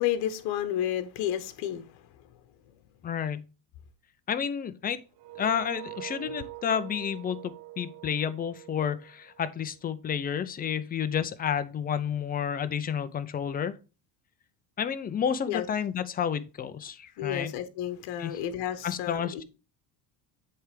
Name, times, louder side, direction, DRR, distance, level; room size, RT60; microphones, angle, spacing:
voice 1, 0.0-2.1 6.3-6.4 15.5-15.6 17.2-19.4, left 11 dB, 65° left, 1.1 m, -31 dB
voice 2, 3.0-3.4 4.3-5.0 5.4-13.8 14.8-17.5 18.2-18.4 18.8-19.4, left 8 dB, 20° left, 0.5 m, -30 dB
sound 1, 5.2-10.0, right 16 dB, 55° right, 0.6 m, -44 dB
7.7 x 3.4 x 5.0 m
cardioid pair, 140°, 44 cm